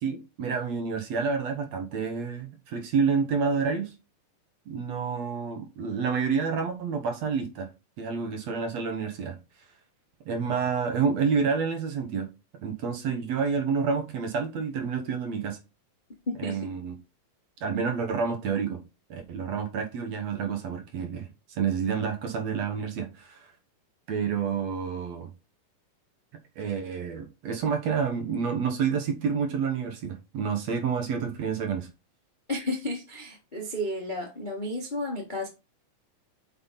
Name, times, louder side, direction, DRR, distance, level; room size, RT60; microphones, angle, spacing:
voice 1, 0.0-3.9 4.7-7.7 8.0-9.4 10.3-12.3 12.6-15.6 16.4-17.0 17.6-18.8 19.1-23.5 24.1-25.3 26.6-31.9, right 6 dB, 60° right, 2.0 m, -29 dB
voice 2, 16.3-16.6 32.5-35.5, left 1 dB, 75° left, 0.4 m, -32 dB
7.7 x 5.8 x 4.0 m
omnidirectional pair, 4.0 m